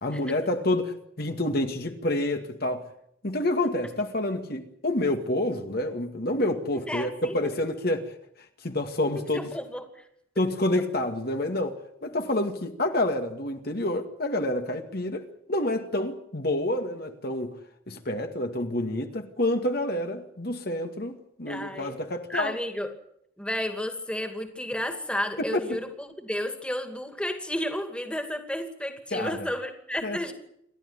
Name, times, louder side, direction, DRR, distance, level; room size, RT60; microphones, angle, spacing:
voice 1, 0.0-2.9 3.2-8.0 8.6-9.5 10.4-17.6 17.9-22.6 25.5-25.8 29.1-29.5 30.0-30.2, left 1 dB, 50° left, 2.1 m, -28 dB
voice 2, 6.7-7.4 9.3-10.0 21.5-21.9 22.3-22.9 23.4-30.3, left 1 dB, 5° left, 2.6 m, -32 dB
28.5 x 13.5 x 9.9 m
head